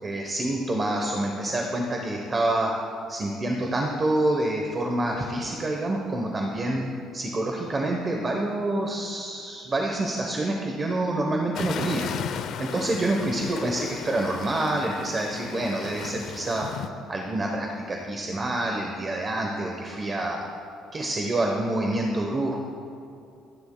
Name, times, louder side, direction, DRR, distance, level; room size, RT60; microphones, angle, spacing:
voice 1, 0.0-2.7 3.1-6.8 7.1-12.1 12.6-16.7 17.1-20.4 20.9-22.6, right 1 dB, 20° right, 1 dB, 0.9 m, -27 dB
sound 1, 11.6-16.9, left 7 dB, 55° left, 0.5 m, -35 dB
25.0 x 10.5 x 2.2 m, 2.5 s
cardioid pair, 165°, 0 cm